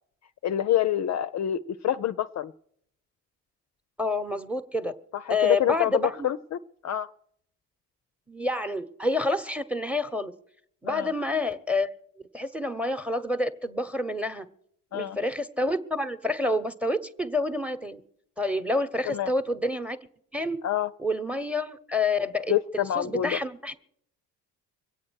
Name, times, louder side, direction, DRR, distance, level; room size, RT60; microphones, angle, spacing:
voice 1, 0.4-2.5 5.1-7.1 10.9-11.1 14.9-15.2 19.1-19.3 20.6-20.9 22.5-23.4, left 11 dB, 35° left, 10 dB, 0.5 m, -27 dB
voice 2, 4.0-4.9 5.3-6.3 8.3-10.3 10.8-11.9 12.3-14.5 14.9-18.0 18.4-20.0 20.3-20.6 21.0-23.7, left 2 dB, 5° right, 12 dB, 1.1 m, -28 dB
23.0 x 8.6 x 6.4 m, 0.71 s
hypercardioid pair, 50°, 46 cm